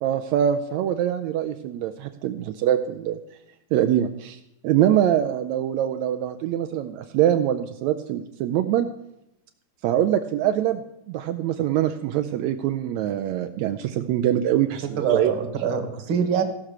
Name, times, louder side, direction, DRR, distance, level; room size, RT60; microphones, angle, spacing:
voice 1, 0.0-3.2 3.7-8.9 9.8-10.8 11.1-15.3, right 11 dB, 85° right, 7 dB, 1.6 m, -24 dB
voice 2, 14.7-16.4, right 7 dB, 50° right, 6 dB, 1.5 m, -25 dB
15.5 x 6.0 x 6.5 m, 0.83 s
omnidirectional pair, 3.9 m